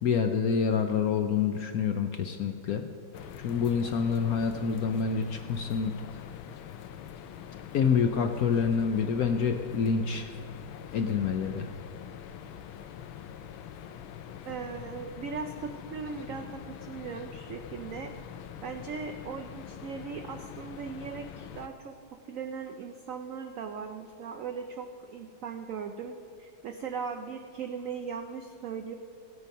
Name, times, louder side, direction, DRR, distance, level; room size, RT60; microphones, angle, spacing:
voice 1, 0.0-2.9 3.4-6.0 7.7-10.3 10.9-11.7, left 6 dB, 70° left, 6 dB, 0.9 m, -27 dB
sound 1, 3.1-21.7, left 9 dB, 90° left, 1.4 m, -44 dB
voice 2, 14.4-18.1 18.6-22.0 22.3-28.9, right 6 dB, 85° right, 5 dB, 0.7 m, -38 dB
16.5 x 8.3 x 5.3 m, 2.5 s
omnidirectional pair, 2.1 m